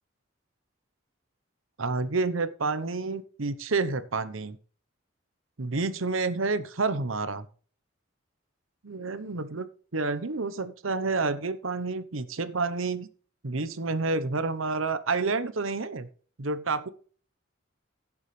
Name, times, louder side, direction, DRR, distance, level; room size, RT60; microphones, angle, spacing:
voice 1, 1.8-4.6 5.6-7.4 8.8-13.1 13.4-16.1 16.4-16.9, right 3 dB, 90° right, 14 dB, 0.9 m, -29 dB
16.5 x 7.2 x 3.3 m, 0.42 s
head